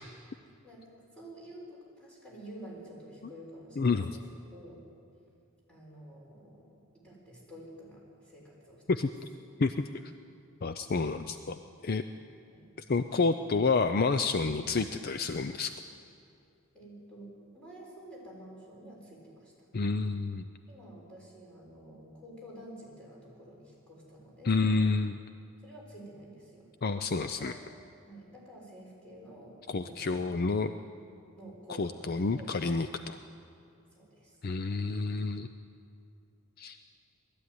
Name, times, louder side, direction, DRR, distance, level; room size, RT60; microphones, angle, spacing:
voice 1, 1.1-4.2 4.5-4.8 5.7-6.7 6.9-8.8 10.9-11.1 12.5-12.7 16.7-19.7 20.7-24.6 25.6-26.7 27.2-27.6 28.0-30.2 31.4-32.1 32.4-32.5 33.9-34.4, right 1 dB, 5° left, -5 dB, 6.5 m, -49 dB
voice 2, 3.8-4.2 8.9-9.1 9.6-9.9 10.6-12.0 12.9-15.7 19.7-20.5 24.4-25.2 26.8-27.5 29.7-30.7 31.8-33.2 34.4-35.5 36.6-36.8, left 4 dB, 45° left, 9 dB, 0.5 m, -29 dB
20.0 x 13.5 x 9.6 m, 2.5 s
head